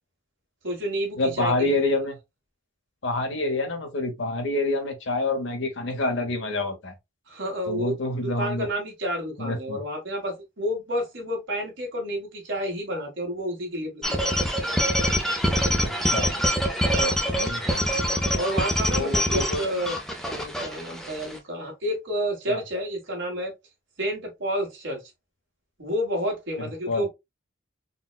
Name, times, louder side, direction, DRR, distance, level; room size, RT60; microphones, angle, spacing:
voice 1, 0.6-1.8 7.3-7.9 8.2-14.3 16.9-17.2 18.3-20.0 20.3-23.5 24.0-25.0 25.8-27.1, equal, 65° right, 1.3 m, -30 dB
voice 2, 1.2-2.2 3.0-6.9 7.7-8.7 9.4-9.8 15.8-16.3 17.3-18.0 18.9-19.7 22.5-22.6 26.6-27.1, left 2 dB, 65° left, 0.7 m, -27 dB
sound 1, 14.0-21.4, equal, ahead, 0.4 m, -25 dB
3.9 x 2.1 x 2.2 m
head